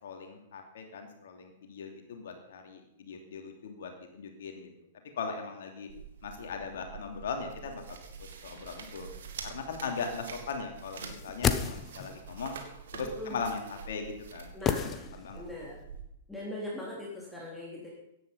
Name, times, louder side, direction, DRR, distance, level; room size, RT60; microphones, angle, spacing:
voice 1, 0.0-4.7 5.1-5.9 6.2-7.8 8.2-9.1 9.4-12.6 12.9-14.5 14.8-15.4, left 5 dB, 55° left, 4 dB, 2.8 m, -39 dB
sound 1, 5.9-16.0, right 6 dB, 60° right, 2.4 m, -47 dB
sound 2, 11.0-12.3 14.6-15.6 15.8-15.9, left 7 dB, 20° left, 1.1 m, -31 dB
voice 2, 13.0-13.4 14.5-15.8 16.3-17.9, left 1 dB, 5° left, -5 dB, 3.8 m, -41 dB
17.0 x 11.0 x 5.6 m, 0.80 s
figure-of-eight pair, 105°, 0 cm